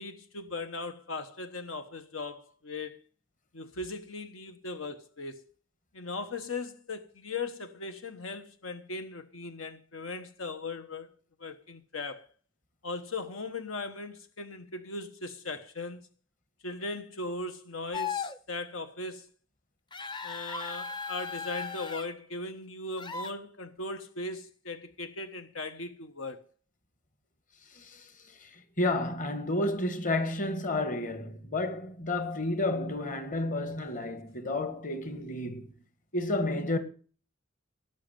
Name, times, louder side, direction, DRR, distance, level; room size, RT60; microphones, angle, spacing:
voice 1, 0.0-3.0 3.5-5.4 5.9-11.1 11.4-12.3 12.8-16.1 16.6-19.3 20.2-26.4, left 3 dB, 80° left, 1.2 m, -38 dB
sound 1, 17.9-18.4 19.9-22.0 23.0-23.3, left 5 dB, 25° left, 0.7 m, -36 dB
voice 2, 27.7-28.1 28.4-28.5 28.8-35.7 36.1-36.8, left 2 dB, 40° left, 1.8 m, -31 dB
17.5 x 6.6 x 9.0 m
head